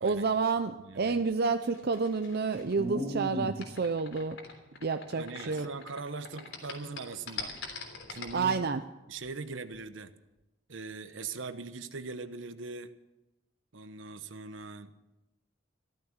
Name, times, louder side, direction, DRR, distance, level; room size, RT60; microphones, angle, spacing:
voice 1, 0.0-4.4 4.8-5.7 8.3-8.8, right 4 dB, 55° right, 8 dB, 0.6 m, -29 dB
voice 2, 0.7-1.2 5.2-7.5 8.1-8.6 9.1-10.1 10.7-12.9 13.7-15.1, right 4 dB, 75° right, 11 dB, 1.0 m, -41 dB
sound 1, 1.6-6.0 6.3-8.4, left 1 dB, 85° left, 3.4 m, -38 dB
14.5 x 13.5 x 6.6 m, 1.0 s
head